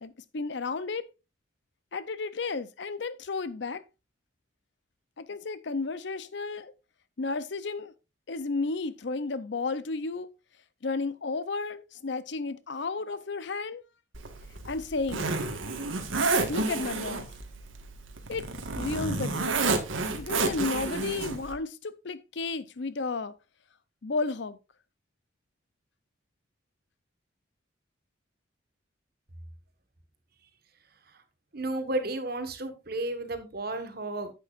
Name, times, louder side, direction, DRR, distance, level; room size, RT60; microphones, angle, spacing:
voice 1, 0.0-1.1 1.9-3.8 5.2-6.7 7.2-7.9 8.3-10.3 10.8-13.8 14.6-15.3 16.5-17.3 18.3-19.7 20.2-23.3 24.0-24.6, left 3 dB, 60° left, 0.6 m, -33 dB
Zipper (clothing), 14.1-21.5, right 3 dB, 85° right, 1.5 m, -30 dB
voice 2, 31.5-34.3, right 2 dB, 50° right, 1.4 m, -32 dB
10.5 x 8.4 x 2.5 m
head